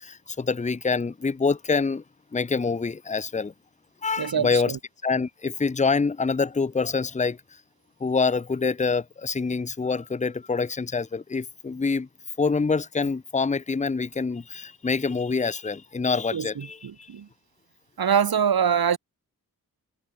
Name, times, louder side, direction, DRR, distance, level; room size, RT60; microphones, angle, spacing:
voice 1, 0.4-2.0 2.3-3.5 4.0-4.7 5.0-7.4 8.0-12.1 12.4-16.8, left 4 dB, 20° left, 0.8 m, -25 dB
voice 2, 4.2-4.8 16.3-17.3 18.0-19.0, right 7 dB, 80° right, 3.7 m, -24 dB
wide cardioid pair, 115°, 36 cm